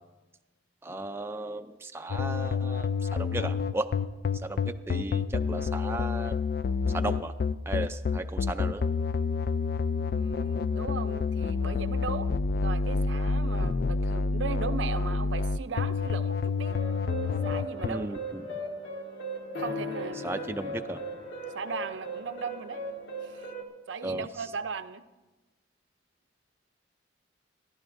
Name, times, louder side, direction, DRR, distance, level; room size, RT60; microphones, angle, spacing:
voice 1, 0.8-3.9 4.4-6.4 6.9-7.3 7.7-8.8 17.8-18.4 20.2-21.0 24.0-24.3, right 2 dB, 15° right, 7 dB, 0.4 m, -35 dB
sound 1, 2.1-17.9, left 4 dB, 55° left, 0.4 m, -28 dB
voice 2, 10.0-16.8 17.4-18.1 19.6-20.4 21.5-22.8 23.2-23.5 23.9-25.0, right 5 dB, 75° right, 11 dB, 0.6 m, -37 dB
sound 2, 16.7-23.6, equal, 75° left, 1.8 m, -37 dB
25.5 x 11.5 x 2.6 m, 1.1 s
head